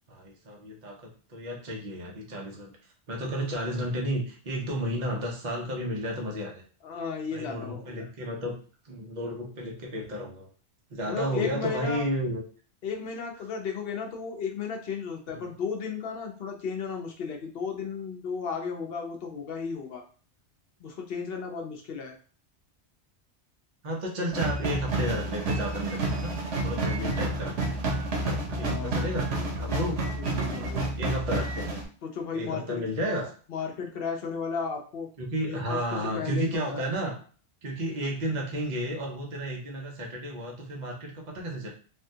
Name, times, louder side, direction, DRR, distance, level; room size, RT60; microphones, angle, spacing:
voice 1, 0.1-2.7 3.1-6.6 7.3-8.6 8.8-10.5 10.9-12.4 15.3-15.5 23.8-26.3 26.6-27.8 28.1-29.3 29.6-30.0 30.5-31.8 32.3-33.3 35.2-37.2 37.6-41.7, equal, 45° right, -1 dB, 0.9 m, -32 dB
voice 2, 6.8-8.1 11.1-12.0 12.8-20.0 20.8-22.2 28.5-29.2 29.7-29.8 30.2-30.9 32.0-32.8 33.5-35.1 35.5-35.8 36.1-36.8, left 5 dB, 60° left, 2 dB, 0.8 m, -34 dB
sound 1, 24.3-31.8, right 2 dB, 90° right, 1.1 m, -30 dB
3.5 x 2.3 x 2.7 m, 0.41 s
omnidirectional pair, 1.2 m